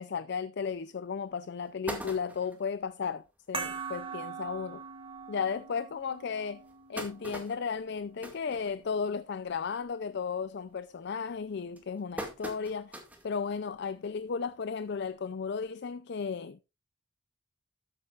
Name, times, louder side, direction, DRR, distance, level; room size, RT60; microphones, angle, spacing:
voice 1, 0.0-4.8 5.3-6.6 6.9-16.6, left 6 dB, 60° left, 0.4 m, -34 dB
sound 1, 0.7-0.8 1.3-1.4 1.6-2.7 3.2-3.3 3.6-3.7 4.0-4.2 4.9-5.0 5.6-5.7 6.4-9.2 9.6-9.9 10.3-10.7 11.3-13.3 13.8-13.9 15.0-15.1, right 1 dB, 10° right, 2.0 m, -42 dB
sound 2, 3.5-8.6, right 5 dB, 30° right, 2.6 m, -42 dB
13.0 x 8.7 x 2.4 m
head